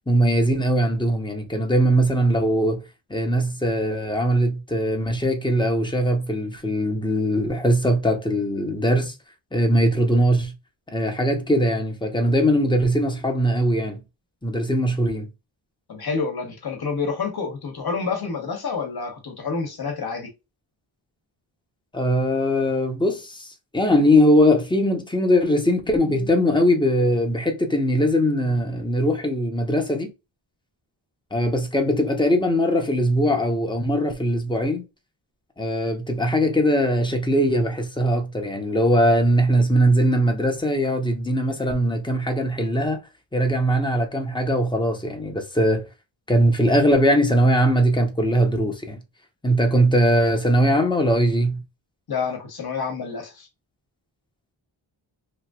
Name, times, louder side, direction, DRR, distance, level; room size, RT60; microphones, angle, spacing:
voice 1, 0.1-2.8 3.1-9.1 9.5-10.5 10.9-14.0 14.4-15.3 21.9-23.5 23.7-30.1 31.3-34.8 35.6-43.0 43.3-45.9 46.3-49.0 49.4-51.6, equal, 10° left, 0.9 m, -20 dB
voice 2, 15.9-20.3 52.1-53.5, left 5 dB, 50° left, 1.1 m, -28 dB
3.0 x 2.5 x 2.3 m
wide cardioid pair, 80°, 47 cm